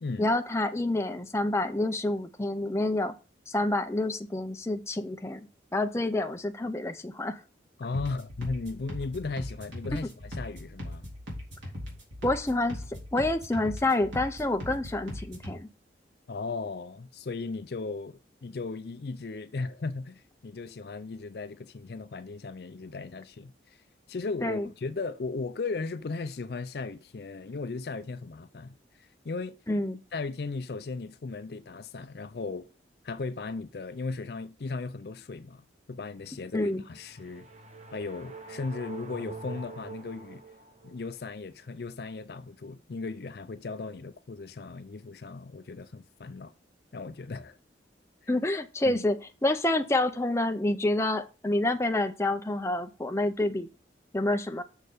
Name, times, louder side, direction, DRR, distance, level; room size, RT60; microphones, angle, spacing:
voice 1, 0.2-3.1 3.5-5.4 5.7-7.4 12.2-12.8 13.1-15.7 24.4-24.7 29.7-30.0 36.5-36.8 48.3-53.7 54.1-54.6, left 2 dB, 15° left, 0.6 m, -28 dB
voice 2, 7.8-11.0 16.3-23.8 24.1-29.6 30.1-32.7 33.0-37.5 37.9-40.4 40.8-46.5 46.9-47.6 48.8-49.0, left 3 dB, 55° left, 0.5 m, -36 dB
sound 1, 7.9-15.6, equal, 90° right, 3.8 m, -40 dB
sound 2, 36.8-41.1, right 3 dB, 35° right, 0.9 m, -45 dB
6.6 x 6.5 x 5.0 m
head